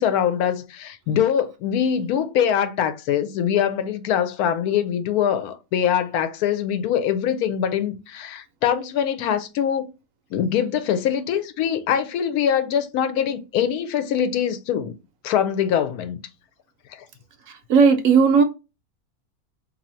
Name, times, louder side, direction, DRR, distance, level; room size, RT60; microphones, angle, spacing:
voice 1, 0.0-9.9 10.3-14.9 15.2-16.2 16.9-17.0, left 9 dB, 80° left, 1.1 m, -23 dB
voice 2, 17.5-18.4, right 5 dB, 70° right, 0.9 m, -16 dB
2.7 x 2.7 x 4.1 m
omnidirectional pair, 1.6 m